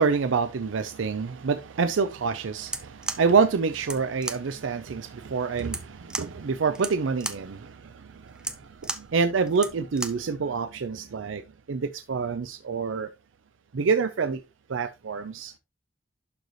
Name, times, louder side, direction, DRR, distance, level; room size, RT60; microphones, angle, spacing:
voice 1, 0.0-11.4 11.7-13.1 13.7-14.4 14.7-15.5, right 5 dB, 85° right, 0.5 m, -27 dB
sound 1, 2.6-10.3, right 2 dB, 5° right, 0.6 m, -37 dB
11.5 x 4.0 x 3.1 m
head